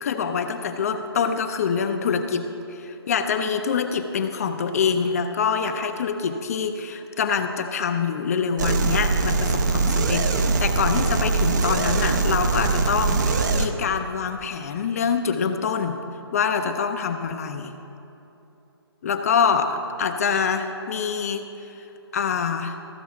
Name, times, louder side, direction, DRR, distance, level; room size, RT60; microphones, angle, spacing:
voice 1, 0.0-16.0 16.3-17.8 19.0-21.9 22.1-22.7, left 6 dB, 35° left, 6 dB, 0.5 m, -25 dB
sound 1, 8.6-13.7, right 4 dB, 45° right, 0.7 m, -22 dB
14.0 x 6.1 x 5.8 m, 2.9 s
figure-of-eight pair, 145°, 14 cm